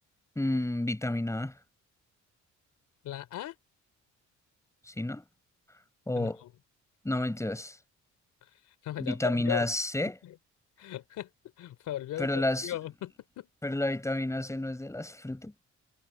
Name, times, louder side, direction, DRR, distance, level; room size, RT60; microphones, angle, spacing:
voice 1, 0.3-1.5 4.9-5.2 6.1-6.4 7.0-7.8 9.0-10.2 12.2-12.7 13.6-15.5, left 1 dB, 10° left, 4.9 m, -30 dB
voice 2, 3.0-3.6 6.1-6.5 8.4-9.7 10.2-10.4 10.8-11.3 11.6-13.5, left 12 dB, 80° left, 3.1 m, -38 dB
cardioid pair, 90°, 30 cm